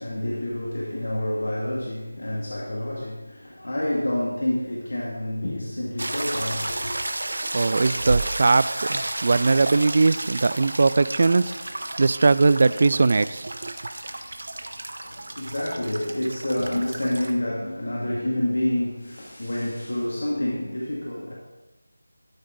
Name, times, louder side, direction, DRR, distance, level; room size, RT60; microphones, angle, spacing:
voice 1, 0.0-6.9 15.0-21.3, left 1 dB, 70° left, 2.3 m, -28 dB
sound 1, 6.0-17.3, right 2 dB, 65° right, 1.2 m, -32 dB
voice 2, 7.5-11.5 12.0-13.7, right 3 dB, 40° right, 0.3 m, -20 dB
12.5 x 9.2 x 3.9 m
figure-of-eight pair, 175°, 0 cm